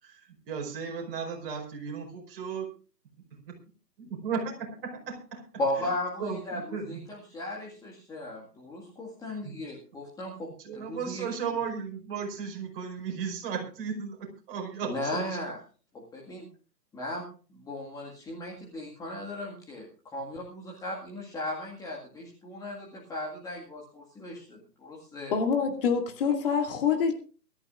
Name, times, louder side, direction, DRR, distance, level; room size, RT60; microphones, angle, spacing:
voice 1, 0.0-2.7 4.0-5.9 6.2-7.0 9.3-9.6 10.6-15.4, right 6 dB, 35° right, 5.3 m, -35 dB
voice 2, 5.6-6.6 6.9-7.0 7.3-10.5 10.7-11.2 14.8-15.6 16.1-16.5 16.9-17.3 17.5-19.9 20.1-25.3, left 1 dB, 5° left, 2.0 m, -36 dB
voice 3, 25.3-27.1, left 6 dB, 35° left, 2.4 m, -26 dB
23.0 x 14.0 x 2.5 m
figure-of-eight pair, 145°, 50 cm